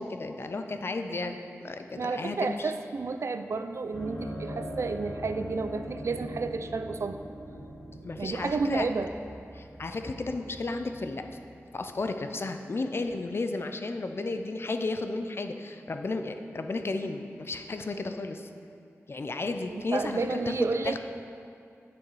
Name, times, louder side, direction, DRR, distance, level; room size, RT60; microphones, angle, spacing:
voice 1, 0.0-2.7 8.0-8.9 9.5-11.2 11.7-18.5 19.1-21.0, left 3 dB, 50° left, 6 dB, 0.5 m, -33 dB
voice 2, 2.0-7.2 8.2-9.1 19.7-21.0, right 4 dB, 60° right, 9 dB, 0.4 m, -31 dB
sound 1, 3.9-12.3, equal, 70° left, 1.9 m, -42 dB
9.1 x 6.2 x 4.8 m, 2.5 s
wide cardioid pair, 90°, 5 cm